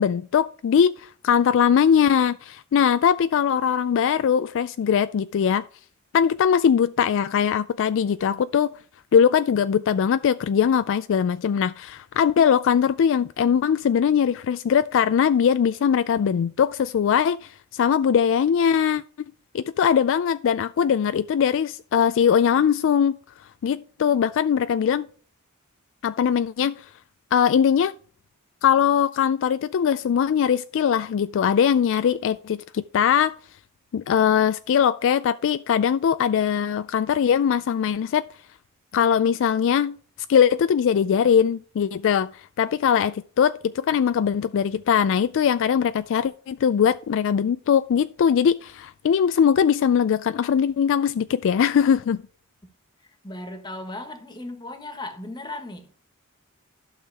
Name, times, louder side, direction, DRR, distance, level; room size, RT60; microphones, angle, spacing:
voice 1, 0.0-5.6 6.1-8.7 9.1-19.0 19.5-23.2 23.6-25.1 26.0-26.9 27.3-27.9 28.6-33.3 33.9-38.3 38.9-40.0 40.3-52.2, left 8 dB, 60° left, 0.3 m, -21 dB
voice 2, 53.0-56.0, left 2 dB, 20° left, 1.5 m, -37 dB
12.0 x 6.4 x 3.5 m
head